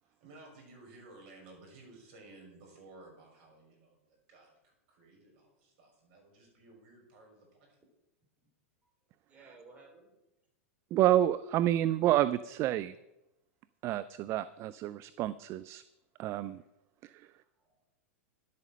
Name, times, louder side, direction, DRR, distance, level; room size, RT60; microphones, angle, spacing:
voice 1, 0.0-7.8, right 2 dB, 55° right, 0 dB, 5.7 m, -56 dB
voice 2, 9.3-10.2 16.3-16.7 17.0-17.9, right 3 dB, 20° right, 0 dB, 4.5 m, -59 dB
voice 3, 10.9-12.9 13.8-15.8 16.2-16.6 17.0-17.3, right 13 dB, 35° right, 15 dB, 0.4 m, -29 dB
11.0 x 8.5 x 6.4 m, 0.92 s
hypercardioid pair, 100°, 8 cm